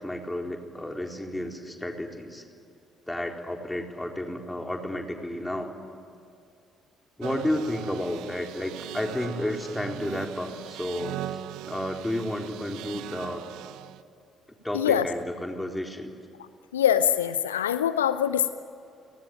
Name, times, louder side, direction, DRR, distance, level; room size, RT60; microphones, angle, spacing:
voice 1, 0.0-2.4 3.1-5.7 7.2-13.4 14.6-16.1, left 1 dB, 10° left, 3 dB, 4.0 m, -32 dB
sound 1, 7.2-14.0, right 12 dB, 65° right, 0.8 m, -39 dB
voice 2, 14.7-15.1 16.4-16.5 16.7-18.5, left 10 dB, 80° left, 13 dB, 0.6 m, -23 dB
30.0 x 19.0 x 9.1 m, 2.5 s
figure-of-eight pair, 45°, 0 cm